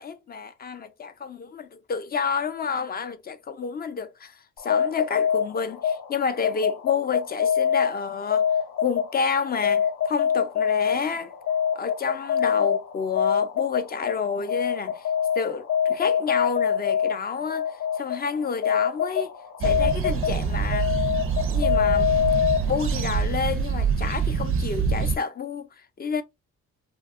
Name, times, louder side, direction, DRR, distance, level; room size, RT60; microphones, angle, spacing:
voice 1, 0.0-8.5 8.8-11.3 11.8-15.1 15.3-19.3 19.6-20.9 21.5-22.1 22.7-26.2, left 5 dB, 30° left, 0.4 m, -29 dB
sound 1, 4.6-23.1, left 8 dB, 80° left, 0.6 m, -25 dB
sound 2, 19.6-25.2, right 6 dB, 45° right, 0.4 m, -25 dB
2.7 x 2.2 x 2.4 m
cardioid pair, 90°, 30 cm